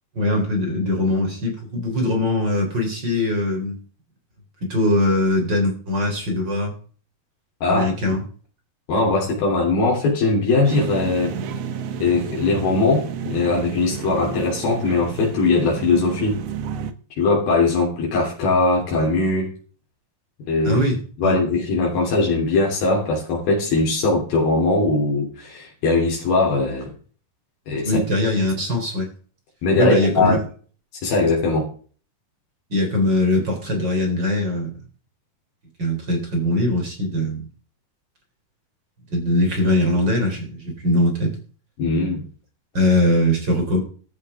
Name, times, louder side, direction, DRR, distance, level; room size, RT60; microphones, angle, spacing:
voice 1, 0.1-3.8 4.7-6.7 7.7-8.2 20.6-21.4 27.8-29.1 29.8-30.4 32.7-34.7 35.8-37.5 39.1-41.4 42.7-43.8, left 1 dB, 30° right, 2 dB, 4.1 m, -21 dB
voice 2, 7.6-8.0 8.9-11.3 12.0-16.4 17.2-19.5 20.5-20.8 21.2-26.9 27.7-28.0 29.6-30.4 31.0-31.7 41.8-42.2, left 3 dB, 80° left, -2 dB, 5.1 m, -20 dB
sound 1, 10.6-16.9, right 6 dB, 70° right, 1.6 m, -31 dB
13.5 x 13.0 x 3.6 m, 0.41 s
omnidirectional pair, 4.1 m